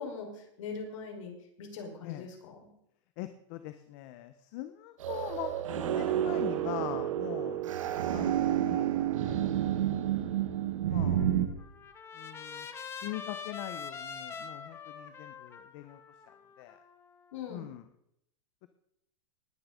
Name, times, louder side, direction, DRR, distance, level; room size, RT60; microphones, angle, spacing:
voice 1, 0.0-2.7 17.3-17.7, left 5 dB, 70° left, 1 dB, 5.0 m, -41 dB
voice 2, 3.2-7.7 8.1-8.9 9.2-9.4 10.9-11.3 12.2-12.7 13.0-16.0 16.6-16.8 17.5-17.8 18.6-18.7, left 14 dB, 40° left, 10 dB, 0.9 m, -42 dB
sound 1, 5.0-11.5, right 11 dB, 80° right, 1.9 m, -30 dB
Trumpet, 11.2-17.3, left 6 dB, 15° left, 1.1 m, -44 dB
19.0 x 8.7 x 5.1 m, 0.77 s
supercardioid pair, 165°, 17 cm